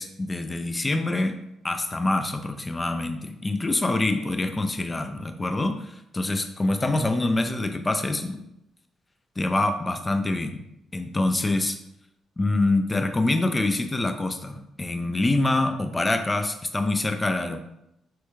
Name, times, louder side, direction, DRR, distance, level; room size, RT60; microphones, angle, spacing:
voice 1, 0.0-1.4 1.6-8.3 9.4-10.6 10.9-11.8 12.4-17.6, left 2 dB, 20° left, 7 dB, 0.3 m, -25 dB
3.3 x 2.2 x 3.1 m, 0.83 s
cardioid pair, 90°, 0 cm